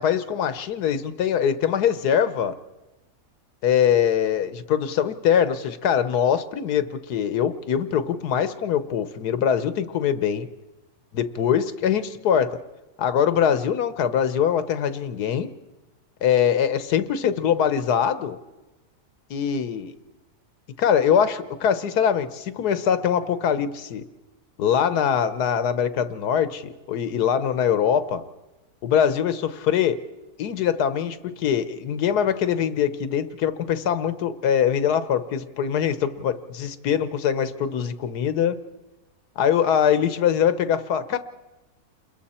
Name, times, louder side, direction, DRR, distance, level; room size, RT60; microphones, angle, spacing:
voice 1, 0.0-2.6 3.6-10.5 11.1-12.6 13.0-15.5 16.2-18.4 19.3-19.9 20.8-24.0 24.6-28.2 28.8-30.0 30.4-38.6 39.4-41.2, left 8 dB, 90° left, 12 dB, 1.5 m, -23 dB
29.0 x 22.0 x 4.3 m, 1.1 s
omnidirectional pair, 1.6 m